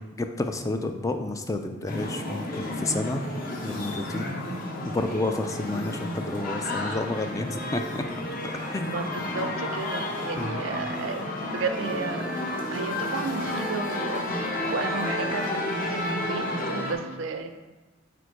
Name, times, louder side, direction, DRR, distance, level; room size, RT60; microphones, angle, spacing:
voice 1, 0.2-3.2 3.6-4.4 4.9-8.0 8.7-8.9 10.4-10.7, left 2 dB, 15° left, 6 dB, 0.3 m, -30 dB
sound 1, 1.9-16.9, left 1 dB, 45° left, 0.8 m, -31 dB
voice 2, 8.8-12.3 12.7-17.5, right 4 dB, 75° right, 7 dB, 0.5 m, -33 dB
5.0 x 4.2 x 4.6 m, 1.2 s
head